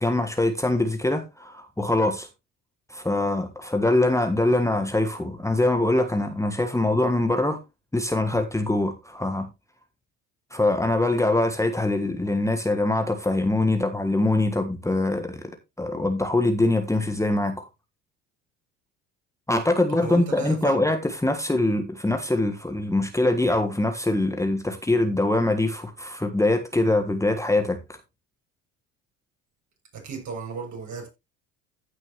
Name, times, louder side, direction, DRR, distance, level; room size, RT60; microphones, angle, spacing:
voice 1, 0.0-2.3 2.9-7.6 7.9-9.5 10.5-17.7 19.5-27.8, left 2 dB, 10° left, 1.5 m, -23 dB
voice 2, 20.0-20.9 29.9-31.1, right 5 dB, 50° right, 7.0 m, -34 dB
15.5 x 6.2 x 3.1 m
hypercardioid pair, 70°, 38 cm